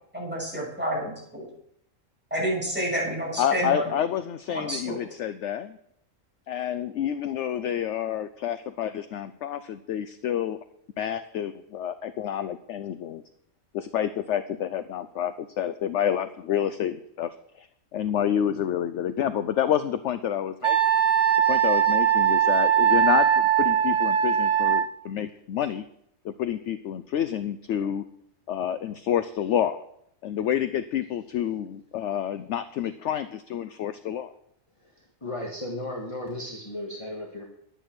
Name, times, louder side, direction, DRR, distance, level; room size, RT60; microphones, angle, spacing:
voice 1, 0.1-1.5 2.3-3.8 4.5-5.0, right 1 dB, 5° right, -4 dB, 6.2 m, -29 dB
voice 2, 3.4-5.8 6.5-10.6 11.0-13.2 13.7-17.7 17.9-20.8 21.5-25.8 26.2-28.0 28.5-29.8 30.2-34.3, left 10 dB, 65° left, 12 dB, 0.8 m, -28 dB
Wind instrument woodwind instrument, 20.6-24.8, right 9 dB, 40° right, 1.4 m, -21 dB
voice 3, 35.2-37.4, left 1 dB, 20° left, 0 dB, 1.7 m, -34 dB
11.5 x 9.1 x 6.0 m, 0.73 s
omnidirectional pair, 1.5 m